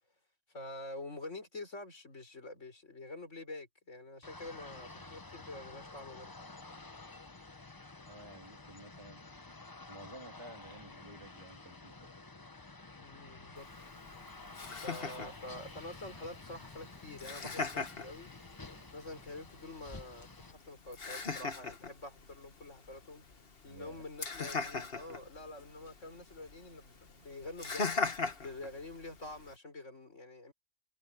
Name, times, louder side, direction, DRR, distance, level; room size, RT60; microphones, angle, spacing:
voice 1, 0.5-6.3 12.9-13.7 14.7-18.3 18.9-23.2 23.6-27.9 28.4-30.5, left 2 dB, 75° left, 5.3 m, -47 dB
sound 1, 4.2-20.5, left 3 dB, 20° left, 0.8 m, -51 dB
voice 2, 8.0-9.2 9.9-11.9 23.6-24.1, right 1 dB, 20° right, 3.0 m, -52 dB
Laughter, 13.6-29.6, left 4 dB, 50° left, 1.8 m, -41 dB
omnidirectional pair, 1.3 m